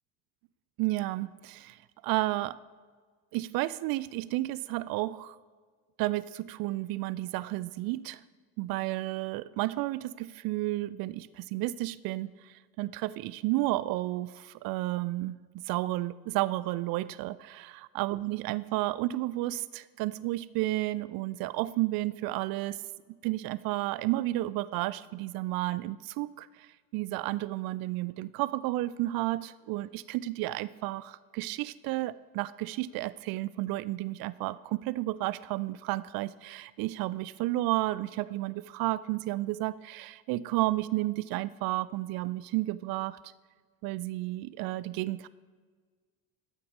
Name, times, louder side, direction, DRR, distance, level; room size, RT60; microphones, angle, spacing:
voice 1, 0.8-2.6 3.3-5.4 6.0-8.2 8.6-15.4 15.7-22.8 23.2-43.2 43.8-45.3, right 17 dB, 50° right, 18 dB, 0.5 m, -32 dB
12.5 x 8.5 x 3.2 m, 1.5 s
hypercardioid pair, 60°, 46 cm